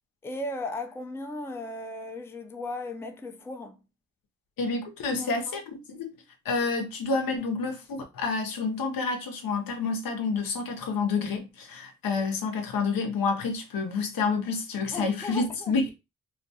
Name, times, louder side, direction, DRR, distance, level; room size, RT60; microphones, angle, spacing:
voice 1, 0.2-3.8 5.1-5.5 14.9-15.8, left 2 dB, 10° left, 0.4 m, -36 dB
voice 2, 4.6-6.1 6.4-15.9, left 4 dB, 75° left, 0.7 m, -29 dB
2.4 x 2.2 x 2.7 m
cardioid pair, 55°, 34 cm